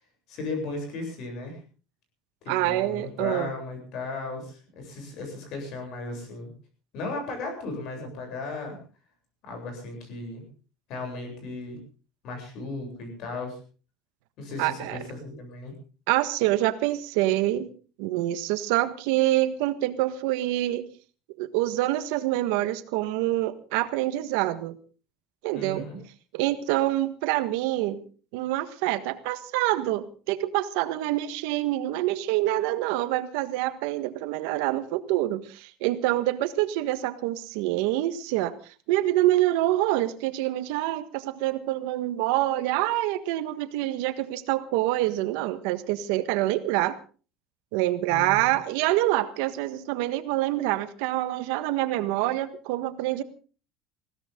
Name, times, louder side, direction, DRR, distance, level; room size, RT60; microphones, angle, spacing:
voice 1, 0.3-1.6 2.4-6.5 6.9-8.8 9.4-10.4 10.9-11.8 12.2-13.6 14.4-15.7 25.5-26.0 48.1-48.6, left 3 dB, 45° left, 4 dB, 8.0 m, -36 dB
voice 2, 2.5-3.5 14.6-15.0 16.1-17.7 18.0-20.9 21.4-24.7 25.4-25.9 26.3-28.0 28.3-38.5 38.9-47.0 47.7-53.2, right 15 dB, 75° right, 11 dB, 1.5 m, -26 dB
21.0 x 16.5 x 3.8 m, 0.38 s
cardioid pair, 180°, 0 cm